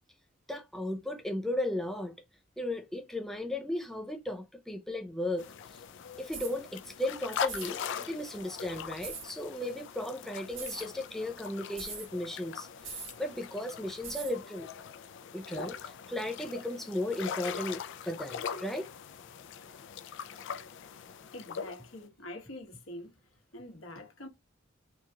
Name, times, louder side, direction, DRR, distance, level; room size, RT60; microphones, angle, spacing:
voice 1, 0.5-2.1 2.6-5.4 6.2-7.8 8.1-14.7 15.3-15.8 16.1-18.9, left 1 dB, ahead, 0.4 m, -35 dB
sound 1, 5.4-22.0, left 7 dB, 60° left, 0.4 m, -42 dB
sound 2, 6.3-6.6 7.4-7.7 9.0-9.3 10.5-10.9 11.8-12.1 12.8-13.2 14.0-14.4, right 5 dB, 65° right, 1.8 m, -41 dB
voice 2, 21.3-23.1 23.5-24.3, left 1 dB, 80° left, 1.4 m, -45 dB
4.5 x 2.4 x 2.7 m
head